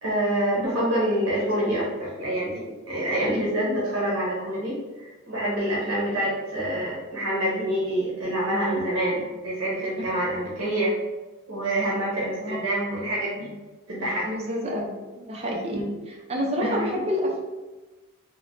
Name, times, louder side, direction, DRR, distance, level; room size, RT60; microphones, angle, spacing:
voice 1, 0.0-10.9 11.5-13.5 13.9-14.3 15.7-15.9 16.5-16.8, right 1 dB, 75° right, -7 dB, 0.7 m, -26 dB
voice 2, 14.2-17.4, equal, 30° right, -1 dB, 0.4 m, -29 dB
3.0 x 2.0 x 2.5 m, 1.2 s
head